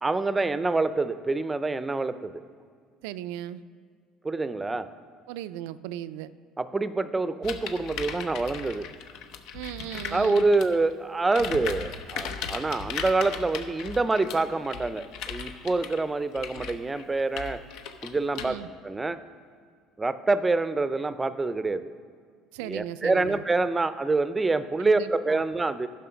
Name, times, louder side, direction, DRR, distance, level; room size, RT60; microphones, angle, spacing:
voice 1, 0.0-2.4 4.2-4.9 6.6-8.9 10.1-17.6 18.0-18.5 18.8-19.2 20.0-21.9 22.7-25.9, right 3 dB, 15° right, 13 dB, 0.5 m, -26 dB
voice 2, 3.0-3.6 5.3-6.3 9.5-10.5 18.4-18.7 22.5-23.4 24.8-25.4, right 12 dB, 85° right, 14 dB, 0.3 m, -37 dB
sound 1, 7.4-10.8 11.2-18.4, left 7 dB, 70° left, 0.7 m, -37 dB
11.0 x 5.9 x 5.7 m, 2.1 s
supercardioid pair, 95°, 0 cm